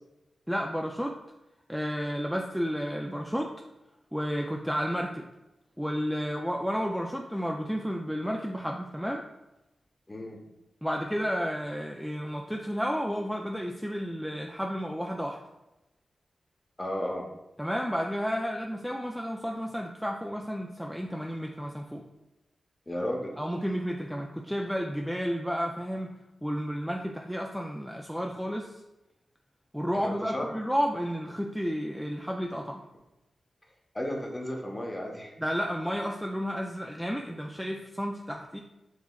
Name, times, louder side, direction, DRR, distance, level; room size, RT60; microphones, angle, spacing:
voice 1, 0.5-1.2 1.7-3.5 4.1-5.2 5.8-9.2 10.8-15.4 17.6-22.0 23.4-26.1 26.4-28.7 29.7-32.8 35.4-38.6, equal, ahead, 1 dB, 0.4 m, -31 dB
voice 2, 10.1-10.4 16.8-17.3 22.9-23.4 30.0-30.5 33.9-35.3, left 1 dB, 25° left, 0 dB, 1.0 m, -33 dB
6.2 x 2.9 x 2.3 m, 0.95 s
cardioid pair, 50°, 0 cm